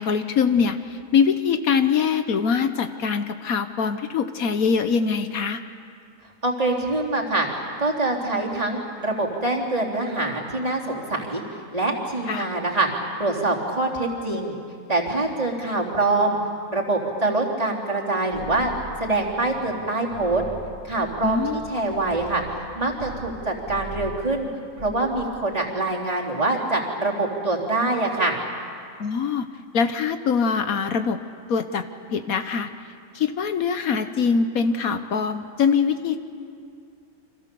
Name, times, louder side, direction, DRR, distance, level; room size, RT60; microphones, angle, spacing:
voice 1, 0.0-5.6 12.3-12.5 21.2-21.6 29.0-29.5 29.7-31.2 31.5-31.9 32.1-32.7 33.1-36.2, left 6 dB, 70° left, 9 dB, 1.4 m, -23 dB
voice 2, 6.4-7.5 7.8-11.4 11.7-14.5 14.9-16.4 16.7-18.7 19.0-20.4 20.8-24.5 24.8-28.4, right 2 dB, 25° right, -2 dB, 3.4 m, -24 dB
sound 1, 18.3-19.8 20.1-23.4 23.7-24.2 24.6-25.1, right 1 dB, 50° left, 6.2 m, -40 dB
29.5 x 25.5 x 6.9 m, 2.3 s
omnidirectional pair, 1.6 m